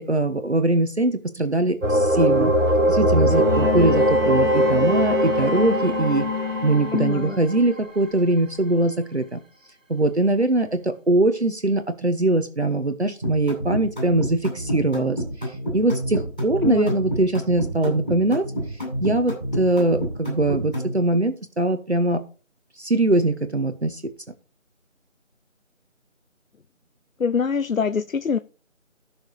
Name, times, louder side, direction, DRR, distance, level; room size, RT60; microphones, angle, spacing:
voice 1, 0.0-2.5 2.9-6.3 6.6-9.4 9.9-22.2 22.8-24.0, right 2 dB, 55° right, 1.2 m, -22 dB
sound 1, 1.8-7.5, equal, 75° right, 1.9 m, -21 dB
Bowed string instrument, 3.3-7.3 8.6-8.7, left 4 dB, 15° right, 3.8 m, -29 dB
voice 2, 6.9-7.4 16.6-17.0 27.2-28.4, left 6 dB, 90° left, 0.8 m, -24 dB
sound 2, 13.2-21.0, equal, 5° left, 7.4 m, -28 dB
13.5 x 6.4 x 4.8 m
figure-of-eight pair, 180°, 39 cm